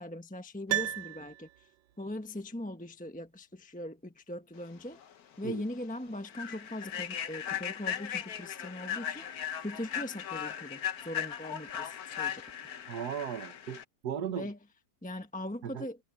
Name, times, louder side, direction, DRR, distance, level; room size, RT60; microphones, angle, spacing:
voice 1, 0.0-1.7 2.0-5.0 5.4-12.4 14.3-14.6 15.0-16.0, left 1 dB, 5° left, 0.7 m, -40 dB
Piano, 0.7-1.9 2.2-2.3, right 14 dB, 80° right, 1.3 m, -34 dB
Human voice / Train, 5.0-5.1 5.5-5.7 6.2-13.8, left 9 dB, 55° left, 1.4 m, -38 dB
voice 2, 12.9-14.5 15.6-15.9, right 8 dB, 60° right, 1.6 m, -37 dB
omnidirectional pair, 2.1 m